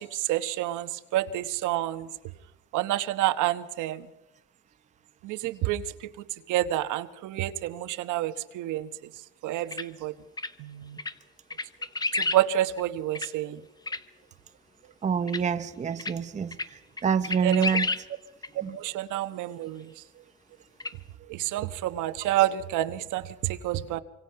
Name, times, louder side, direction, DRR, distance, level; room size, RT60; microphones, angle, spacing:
voice 1, 0.0-2.1 2.7-4.1 5.2-6.1 6.5-8.9 9.4-10.1 10.6-11.0 12.1-13.6 17.4-17.8 18.7-19.9 21.3-24.0, right 13 dB, 65° right, 1.3 m, -29 dB
sound 1, 9.7-9.8 10.4-10.5 11.0-11.1 11.5-12.4 12.8-12.9 13.1-13.3 13.9-14.0 15.3-15.4 16.0-16.1 16.5-16.7 17.0-18.0 18.4-18.5 20.8-20.9, left 3 dB, 10° left, 0.8 m, -30 dB
voice 2, 15.0-17.9 18.6-18.7, right 6 dB, 20° right, 0.8 m, -27 dB
25.5 x 25.0 x 5.8 m
cardioid pair, 130°, 32 cm